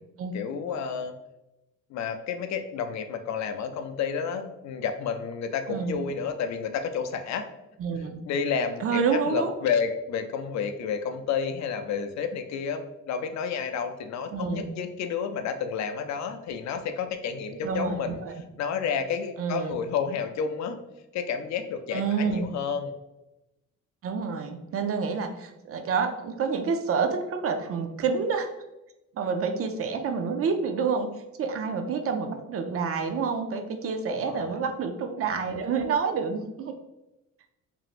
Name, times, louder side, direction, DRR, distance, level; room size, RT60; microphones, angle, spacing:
voice 1, 0.3-1.1 1.9-7.5 8.2-18.2 18.6-20.8 21.1-22.9 34.1-34.6, left 6 dB, 65° left, 7 dB, 0.4 m, -30 dB
voice 2, 5.7-6.0 7.8-8.2 8.8-9.5 14.3-14.7 17.6-18.3 19.4-19.7 21.9-22.5 24.0-28.5 29.2-31.1 31.4-36.7, right 5 dB, 50° right, 6 dB, 0.4 m, -28 dB
3.0 x 2.6 x 2.4 m, 0.95 s
cardioid pair, 90°, 30 cm